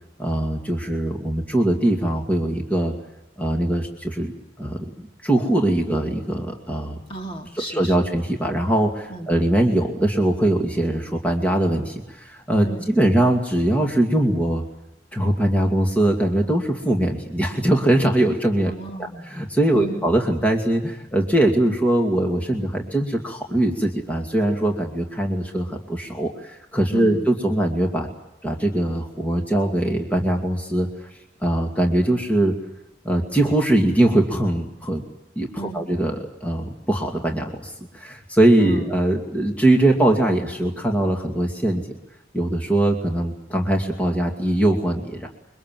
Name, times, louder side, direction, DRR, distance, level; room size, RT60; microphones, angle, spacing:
voice 1, 0.2-2.9 3.4-4.3 4.6-7.0 7.7-12.7 12.9-14.6 15.1-18.7 19.3-28.1 28.4-31.1 31.4-32.5 33.0-35.0 35.4-35.5 35.7-41.8 42.3-45.3, right 1 dB, 10° left, 2 dB, 2.4 m, -21 dB
voice 2, 7.1-8.1 9.1-9.3 12.6-12.9 18.7-19.3 19.7-20.1 26.9-27.2 35.6-35.9 38.6-38.9 40.0-40.1, right 2 dB, 30° left, 2 dB, 2.9 m, -34 dB
26.0 x 24.0 x 7.7 m, 0.90 s
head